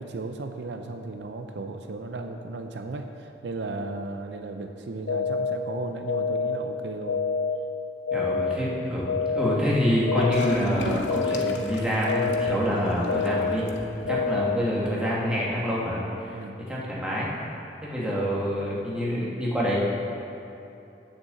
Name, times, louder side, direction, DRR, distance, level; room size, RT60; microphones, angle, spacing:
voice 1, 0.0-7.2 14.1-14.2 16.3-16.6, right 3 dB, 70° right, 5 dB, 0.5 m, -35 dB
sound 1, 5.1-5.6 6.1-6.6 7.1-7.6 8.1-8.6 9.1-9.6 10.1-10.6 11.1-11.6 12.1-12.6 13.1-13.6 14.1-14.6, left 5 dB, 70° left, 0.5 m, -26 dB
voice 2, 8.1-13.6 14.1-16.3 16.7-17.3 17.8-19.8, equal, 5° right, -7 dB, 1.9 m, -26 dB
Gurgling / Toilet flush, 10.2-14.1, left 2 dB, 90° left, 0.8 m, -36 dB
7.8 x 6.7 x 7.5 m, 2.7 s
head